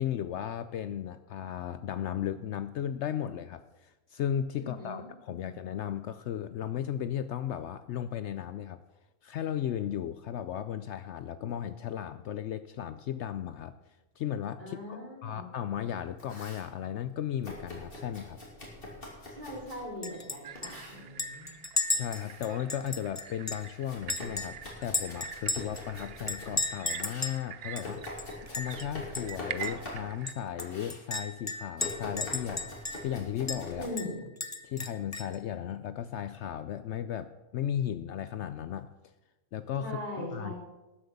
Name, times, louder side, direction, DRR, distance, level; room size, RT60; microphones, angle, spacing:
voice 1, 0.0-8.8 9.2-13.7 14.2-18.4 21.9-28.0 28.5-32.7 33.0-33.9 34.6-38.9 39.5-40.5, left 10 dB, 70° left, 12 dB, 0.8 m, -35 dB
voice 2, 4.6-5.5 14.6-15.4 19.3-21.5 33.8-34.2 39.8-40.6, left 1 dB, 35° right, -2 dB, 3.5 m, -40 dB
Domestic sounds home sounds, 15.9-16.7 17.4-19.9 20.5-21.0 21.8-22.5 22.8-26.6 27.0-30.3 30.6-31.0 31.8-33.9, left 1 dB, 45° left, 2.9 m, -44 dB
Chink clink, 20.0-20.4 20.6-20.7 21.2-23.7 24.1-25.8 26.3-27.4 27.8-27.9 28.2-28.8 29.1-29.3 29.6-29.7 30.3-33.1 33.5-33.6 34.0-35.4, left 2 dB, 20° left, 0.4 m, -34 dB
sound 1, 20.4-30.3, right 10 dB, 60° right, 0.7 m, -46 dB
12.5 x 7.8 x 6.9 m, 1.1 s
omnidirectional pair, 1.3 m